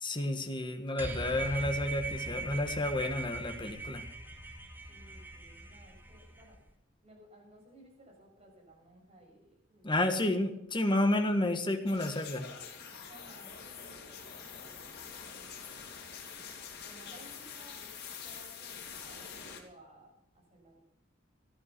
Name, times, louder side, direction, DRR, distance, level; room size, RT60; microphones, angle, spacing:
voice 1, 0.0-4.0 9.8-12.4, left 1 dB, 25° left, 6 dB, 1.5 m, -31 dB
sound 1, 1.0-6.6, right 2 dB, 10° right, 2.3 m, -40 dB
voice 2, 4.9-6.6 7.0-10.5 13.1-17.9 18.2-20.8, right 1 dB, 35° right, -1 dB, 6.8 m, -58 dB
sound 2, 11.9-19.6, left 6 dB, 55° left, 2.7 m, -46 dB
14.0 x 12.0 x 6.0 m, 0.83 s
head